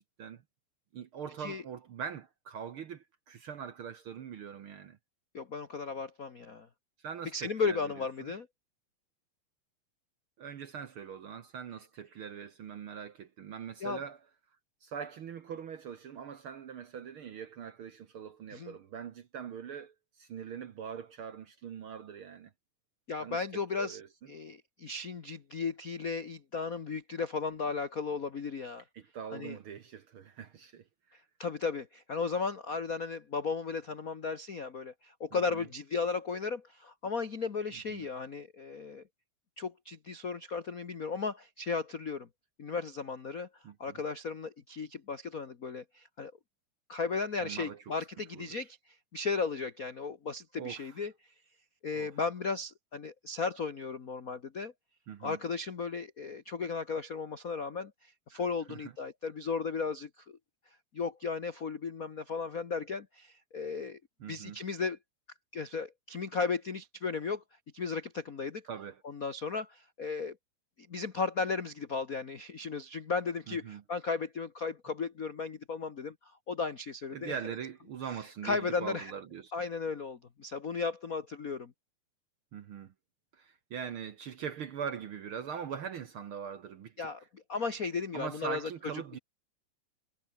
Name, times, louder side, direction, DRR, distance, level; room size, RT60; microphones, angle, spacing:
voice 1, 0.9-5.0 7.0-8.3 10.4-14.2 14.8-22.5 23.2-23.4 23.8-24.1 28.9-31.2 35.3-35.7 37.9-38.1 43.6-44.0 47.4-48.1 48.3-48.7 50.6-51.0 51.9-52.2 55.1-55.4 58.3-58.4 58.7-58.9 64.2-64.6 68.6-69.0 73.5-73.8 77.1-79.5 82.5-82.9 83.3-87.1 88.1-89.2, right 7 dB, 60° right, 1.5 m, -42 dB
voice 2, 5.3-6.7 7.3-8.5 13.8-14.0 18.5-18.7 23.1-24.0 24.3-28.8 29.3-29.6 31.4-39.0 39.6-42.3 42.6-43.5 43.8-46.3 46.9-51.1 51.8-54.7 55.2-60.4 60.9-64.0 64.3-65.0 65.5-67.4 67.7-68.6 69.0-70.4 70.8-77.4 78.4-79.1 79.5-81.7 87.0-88.7, left 4 dB, 75° left, 0.7 m, -35 dB
omnidirectional pair, 3.7 m